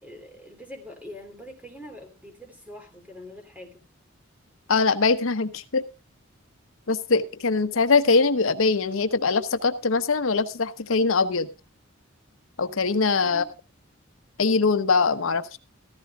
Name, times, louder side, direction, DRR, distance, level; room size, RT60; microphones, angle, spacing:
voice 1, 0.0-3.8 13.2-13.5, left 1 dB, 5° right, 4 dB, 3.0 m, -43 dB
voice 2, 4.7-5.8 6.9-11.5 12.6-13.5 14.4-15.6, left 4 dB, 75° left, 10 dB, 0.9 m, -22 dB
15.0 x 14.0 x 2.4 m, 0.28 s
head